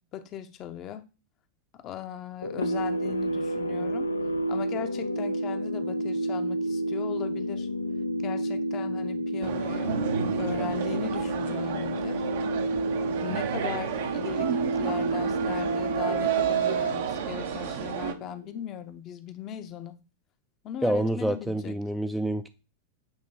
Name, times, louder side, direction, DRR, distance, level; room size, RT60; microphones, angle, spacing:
voice 1, 0.1-1.0 1.7-4.1 4.5-7.7 8.2-10.0 10.4-12.2 13.0-20.0 20.6-21.8, left 10 dB, 35° left, 0.7 m, -38 dB
sound 1, 2.4-18.7, right 1 dB, 80° left, 0.5 m, -30 dB
sound 2, 9.4-18.1, right 9 dB, 55° right, 0.7 m, -31 dB
voice 2, 20.8-22.5, right 1 dB, 5° right, 0.4 m, -27 dB
8.0 x 3.0 x 4.1 m
figure-of-eight pair, 90°, 0 cm